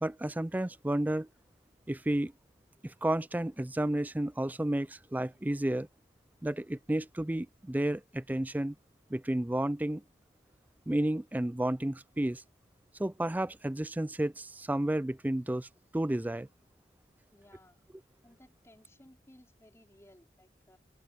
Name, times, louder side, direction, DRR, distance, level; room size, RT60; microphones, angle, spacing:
voice 1, 0.0-1.3 1.9-2.3 2.8-5.9 6.4-8.7 9.1-10.0 10.9-12.4 13.0-15.7 15.9-16.5, right 1 dB, 10° right, 0.4 m, -31 dB
voice 2, 17.3-17.8 18.2-20.8, left 1 dB, 15° left, 4.7 m, -59 dB
open air
head